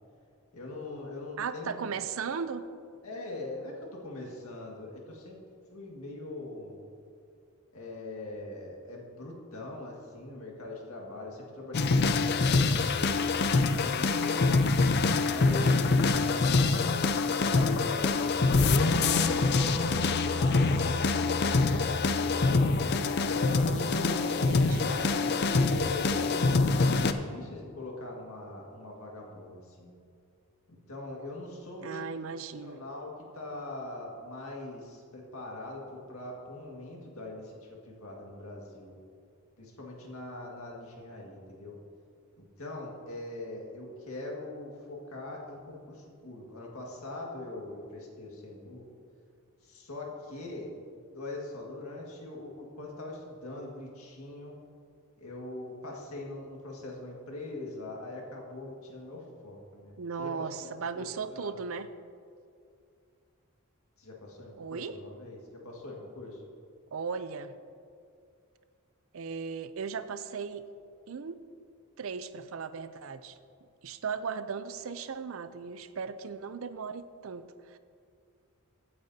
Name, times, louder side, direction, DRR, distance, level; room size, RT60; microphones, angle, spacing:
voice 1, 0.5-1.9 3.0-5.4 5.7-6.9 7.7-14.6 15.2-18.9 19.3-22.4 23.2-26.6 27.0-30.0 30.7-32.1 32.6-37.5 37.8-39.0 39.6-41.8 42.4-48.8 49.6-50.7 51.1-54.6 55.2-61.5 64.0-66.4, left 2 dB, 80° left, -2 dB, 1.9 m, -42 dB
voice 2, 1.4-2.7 23.6-25.1 31.8-32.8 60.0-61.9 64.6-65.0 66.9-67.5 69.1-70.6 71.1-71.4 72.0-73.4 73.8-77.8, right 5 dB, 70° right, 13 dB, 0.5 m, -37 dB
sound 1, 11.7-27.1, left 3 dB, 50° left, 0.5 m, -25 dB
16.0 x 8.6 x 2.8 m, 2.4 s
head